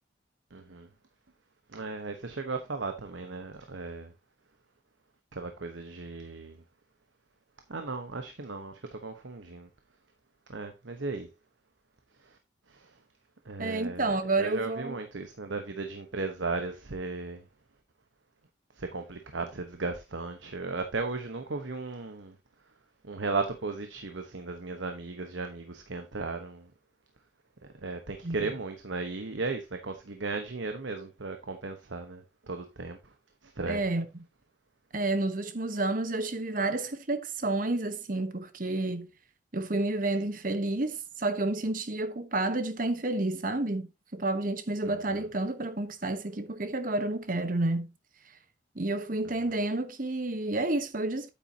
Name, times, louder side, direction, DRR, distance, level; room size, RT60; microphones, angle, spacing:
voice 1, 0.5-0.9 1.7-4.1 5.3-6.6 7.7-9.7 10.5-11.3 12.2-12.4 12.7-13.0 13.4-17.5 18.7-22.4 23.0-26.7 27.7-33.1 33.4-33.8 44.8-45.2, right 3 dB, 80° right, 1.1 m, -36 dB
voice 2, 13.6-15.0 28.2-28.5 33.7-34.0 34.9-39.1 39.5-47.9 48.7-51.3, right 2 dB, 45° right, 1.1 m, -30 dB
9.0 x 8.4 x 2.8 m
head